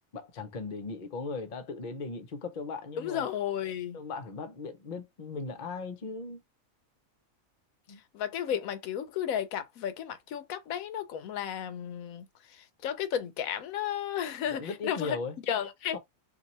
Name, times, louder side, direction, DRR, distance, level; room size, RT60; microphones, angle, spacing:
voice 1, 0.1-3.3 3.9-6.4 7.9-8.0 14.5-15.4 15.9-16.0, left 4 dB, 45° left, 0.8 m, -38 dB
voice 2, 3.0-4.0 8.1-15.2 15.5-16.0, left 9 dB, 85° left, 1.1 m, -33 dB
2.8 x 2.6 x 4.1 m
omnidirectional pair, 1.4 m